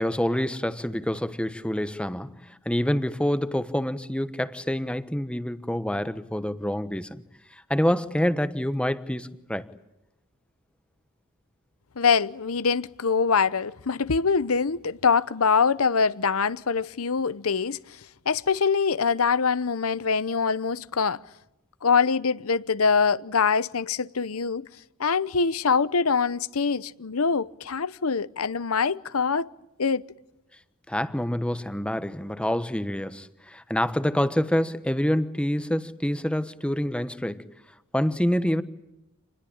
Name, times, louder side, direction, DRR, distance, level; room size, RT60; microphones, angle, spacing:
voice 1, 0.0-7.2 7.5-9.7 30.9-37.5 37.9-38.6, equal, 5° left, 1.1 m, -27 dB
voice 2, 12.0-18.0 18.3-21.2 21.8-24.7 25.0-29.5 29.8-30.0, left 5 dB, 75° left, 0.8 m, -24 dB
27.5 x 20.5 x 8.7 m
head